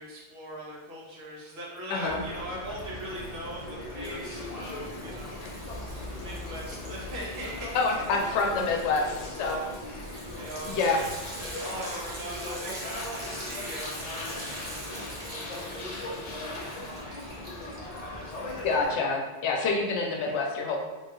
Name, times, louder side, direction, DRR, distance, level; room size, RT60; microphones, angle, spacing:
voice 1, 0.0-8.6 8.9-9.7 10.0-11.0 11.4-17.4 17.7-18.6, equal, 70° right, -5 dB, 1.1 m, -41 dB
Liquid, 1.8-2.4 2.7-18.9, right 1 dB, 50° right, 0.8 m, -43 dB
sound 1, 2.1-18.9, left 2 dB, 55° left, 0.4 m, -39 dB
voice 2, 7.7-9.6 10.7-11.0 18.6-20.8, left 4 dB, 90° left, 0 dB, 0.9 m, -27 dB
3.3 x 2.3 x 2.7 m, 1.2 s
omnidirectional pair, 1.1 m